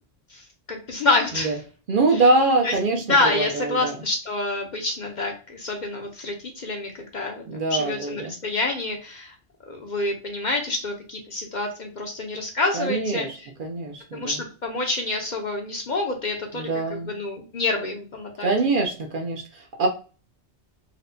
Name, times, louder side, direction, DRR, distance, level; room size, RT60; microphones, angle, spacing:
voice 1, 0.3-1.6 2.1-2.2 2.6-2.7 3.1-9.3 9.7-13.5 14.1-18.5, left 2 dB, 50° left, 2 dB, 0.7 m, -27 dB
voice 2, 1.9-3.0 3.3-4.0 7.5-8.3 12.7-14.4 16.5-17.1 18.4-19.9, right 2 dB, 55° right, 3 dB, 0.7 m, -24 dB
4.2 x 2.2 x 2.6 m, 0.35 s
omnidirectional pair, 1.1 m